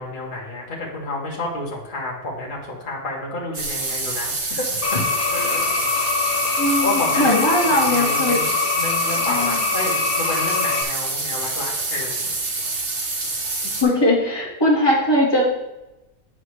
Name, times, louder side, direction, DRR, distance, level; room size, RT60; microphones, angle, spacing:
voice 1, 0.0-5.0 5.3-5.7 6.8-7.3 7.6-12.3, left 2 dB, 35° left, -3 dB, 1.6 m, -30 dB
sound 1, 3.5-13.8, right 3 dB, 50° right, 1.4 m, -27 dB
sound 2, 4.8-10.8, left 5 dB, 70° left, 1.1 m, -24 dB
voice 2, 6.6-8.4 9.1-9.6 13.6-15.4, left 1 dB, 15° left, -5 dB, 2.0 m, -20 dB
9.4 x 4.9 x 3.2 m, 0.96 s
omnidirectional pair, 1.6 m